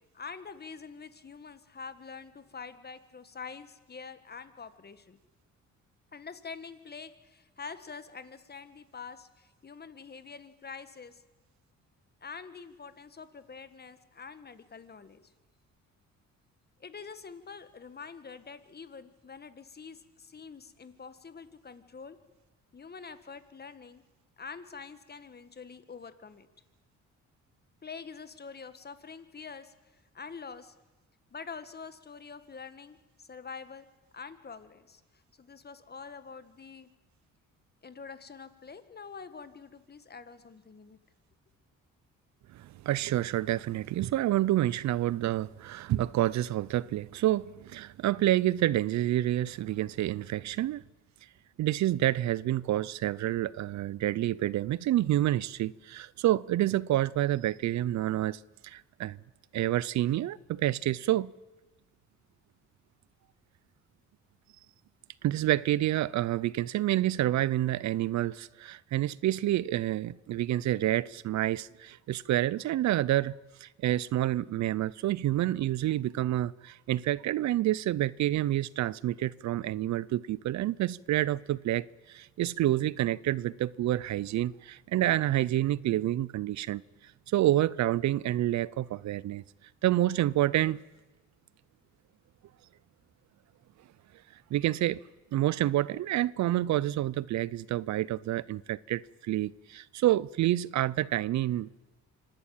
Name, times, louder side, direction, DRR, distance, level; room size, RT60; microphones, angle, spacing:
voice 1, 0.0-5.2 6.1-11.2 12.2-15.3 16.8-22.2 22.7-24.0 24.4-26.5 27.8-29.7 30.1-30.7 31.3-33.9 34.1-35.0 35.4-36.9 37.8-41.0, left 5 dB, 35° left, 1.6 m, -46 dB
voice 2, 42.5-50.8 51.6-59.2 59.5-61.3 65.2-73.3 73.6-86.8 87.3-89.4 89.8-90.8 94.5-95.0 95.3-101.7, right 14 dB, 65° right, 0.6 m, -28 dB
25.5 x 11.5 x 8.9 m
cardioid pair, 90°, 30 cm